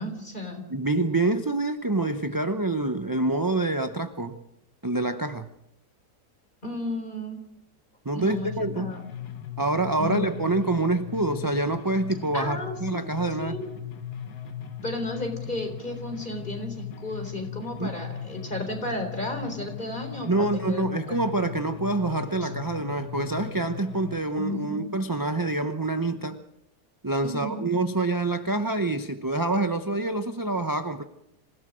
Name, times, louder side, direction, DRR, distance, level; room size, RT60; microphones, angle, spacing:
voice 1, 0.0-0.6 6.6-7.4 8.1-9.1 10.0-10.3 12.3-13.0 13.4-13.7 14.8-21.3 22.4-22.5 24.4-24.8 27.2-27.6, left 1 dB, 30° left, 5 dB, 4.1 m, -33 dB
voice 2, 0.7-4.4 4.8-5.5 8.0-8.9 9.6-13.5 17.8-18.0 20.2-26.4 27.0-31.0, right 2 dB, 20° right, 8 dB, 0.6 m, -26 dB
sound 1, 8.2-24.2, left 9 dB, 70° left, 1.9 m, -38 dB
26.5 x 17.0 x 6.3 m, 0.80 s
omnidirectional pair, 1.7 m